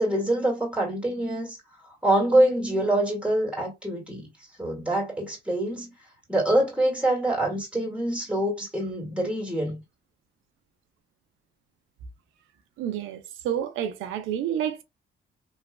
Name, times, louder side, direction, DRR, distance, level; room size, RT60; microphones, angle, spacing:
voice 1, 0.0-1.6 1.9-4.3 4.6-5.9 6.3-9.8, right 1 dB, 5° right, 1.9 m, -25 dB
voice 2, 12.8-14.8, right 10 dB, 90° right, 0.5 m, -29 dB
3.0 x 2.3 x 2.2 m
cardioid pair, 90°, 20 cm